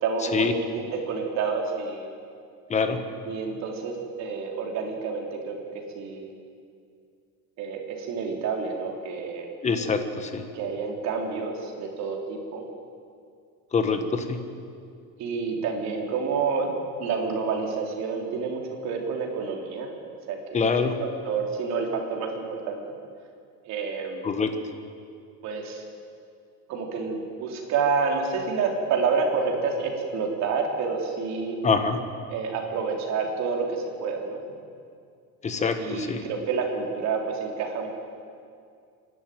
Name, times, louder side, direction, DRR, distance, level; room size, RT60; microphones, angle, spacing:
voice 1, 0.0-2.1 3.2-5.6 6.0-6.3 7.6-9.5 10.5-12.6 13.8-14.4 15.2-16.7 17.0-19.9 20.3-22.8 23.7-24.2 25.4-25.8 26.7-31.6 32.3-34.4 35.8-37.9, right 5 dB, 50° right, 1 dB, 3.6 m, -29 dB
voice 2, 9.6-10.4 13.7-14.4 20.5-21.0 24.2-24.5 31.6-32.0 35.4-36.2, left 5 dB, 20° left, 8 dB, 1.3 m, -24 dB
25.5 x 11.5 x 9.3 m, 2.3 s
cardioid pair, 175°, 35 cm